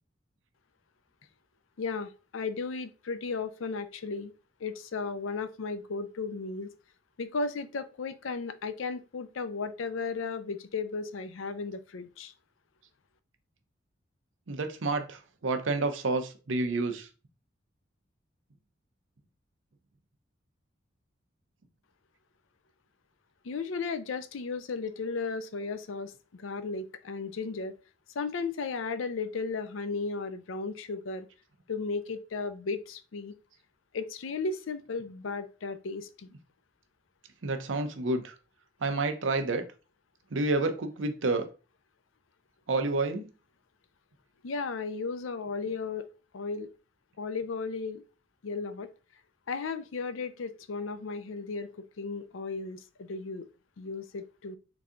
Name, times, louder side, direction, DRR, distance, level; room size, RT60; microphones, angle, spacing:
voice 1, 1.8-4.3 4.6-6.7 7.2-12.3 23.4-27.8 28.1-31.3 31.7-33.3 33.9-36.3 44.4-46.1 46.3-46.7 47.2-48.0 48.4-48.9 49.5-53.4 53.8-54.6, left 4 dB, 90° left, 0.5 m, -35 dB
voice 2, 14.5-17.1 37.4-38.3 38.8-39.6 40.3-41.5 42.7-43.3, right 3 dB, 75° right, 0.7 m, -29 dB
3.9 x 2.7 x 3.6 m
head